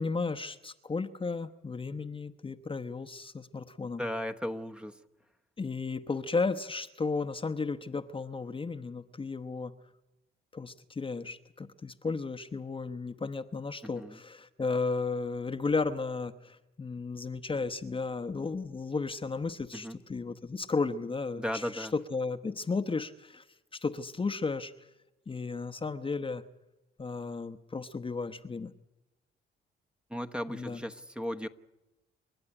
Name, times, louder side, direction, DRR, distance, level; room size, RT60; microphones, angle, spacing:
voice 1, 0.0-4.0 5.6-9.7 10.5-23.4 23.7-24.9 25.3-26.4 27.0-28.7 30.5-30.8, left 4 dB, 25° left, 8 dB, 1.0 m, -34 dB
voice 2, 4.0-5.0 14.0-14.2 19.7-20.0 21.4-21.9 30.1-31.5, equal, 5° right, 7 dB, 1.1 m, -36 dB
29.0 x 12.5 x 10.0 m, 0.99 s
cardioid pair, 90°, 20 cm